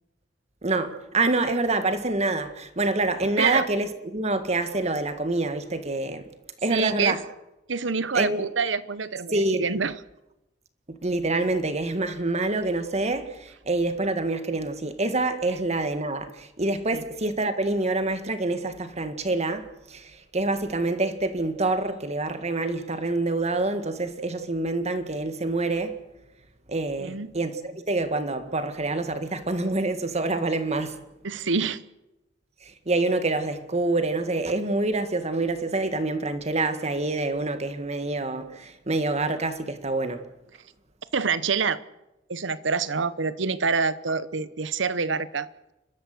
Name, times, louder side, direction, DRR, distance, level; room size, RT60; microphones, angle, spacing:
voice 1, 0.6-6.3 6.6-7.2 8.1-8.4 9.3-9.7 10.9-26.0 26.7-31.0 32.6-40.3, right 2 dB, 35° right, 1.8 m, -26 dB
voice 2, 6.7-7.2 7.7-10.0 16.9-17.0 27.0-27.3 31.2-31.8 41.1-41.8 42.3-45.7, right 5 dB, 70° right, 0.9 m, -26 dB
30.0 x 13.0 x 8.0 m
head